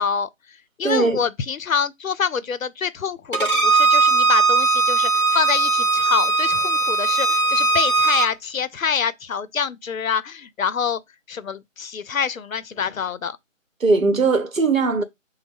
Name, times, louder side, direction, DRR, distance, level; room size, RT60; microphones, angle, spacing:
voice 1, 0.0-11.0 11.3-13.4, left 7 dB, 85° left, 0.5 m, -26 dB
voice 2, 0.8-1.2 13.8-15.0, right 4 dB, 85° right, 0.8 m, -19 dB
Bowed string instrument, 3.3-8.3, right 4 dB, 40° left, 0.7 m, -19 dB
5.1 x 2.0 x 3.3 m
figure-of-eight pair, 175°, 39 cm